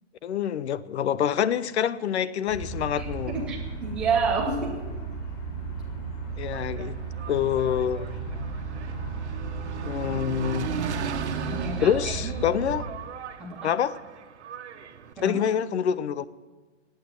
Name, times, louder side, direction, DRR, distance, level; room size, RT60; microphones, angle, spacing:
voice 1, 0.2-3.5 6.4-7.0 7.3-8.2 9.8-10.9 11.8-12.9 13.6-14.0 15.2-16.3, left 9 dB, 65° left, 0.7 m, -26 dB
sound 1, 2.5-12.8, right 4 dB, 35° left, 4.3 m, -34 dB
voice 2, 3.0-4.9 11.5-12.3 13.4-13.7 15.2-15.4, right 4 dB, 5° right, 0.5 m, -29 dB
Engine, 6.3-15.1, right 7 dB, 65° right, 1.4 m, -37 dB
15.5 x 9.1 x 9.5 m
hypercardioid pair, 175°, 36 cm